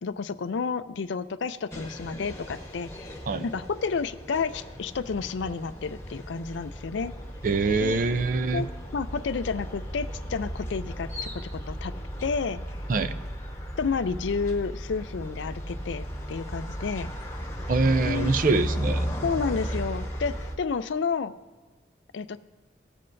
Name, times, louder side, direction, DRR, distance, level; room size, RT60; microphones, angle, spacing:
voice 1, 0.0-7.1 7.8-8.0 8.5-8.7 8.9-11.9 12.2-12.6 13.8-17.1 18.0-18.3 19.2-21.3 22.1-22.4, left 5 dB, 85° left, 13 dB, 0.4 m, -31 dB
Trains pass by at Santos Lugares, 1.7-20.5, equal, 15° left, 1.1 m, -35 dB
voice 2, 7.4-8.6 12.9-13.2 17.7-19.1, right 3 dB, 45° right, 11 dB, 0.4 m, -24 dB
18.0 x 7.6 x 2.6 m, 1.4 s
head